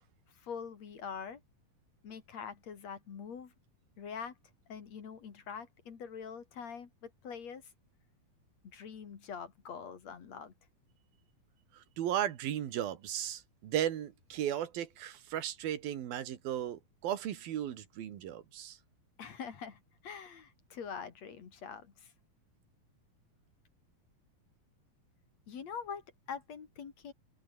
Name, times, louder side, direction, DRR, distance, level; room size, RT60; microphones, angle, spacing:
voice 1, 0.4-1.4 2.0-3.5 4.0-4.3 4.7-7.6 8.6-10.5 19.2-22.1 25.5-26.0 26.3-27.1, left 6 dB, 50° left, 3.4 m, -44 dB
voice 2, 11.7-18.8, right 11 dB, 90° right, 3.7 m, -36 dB
open air
omnidirectional pair, 4.1 m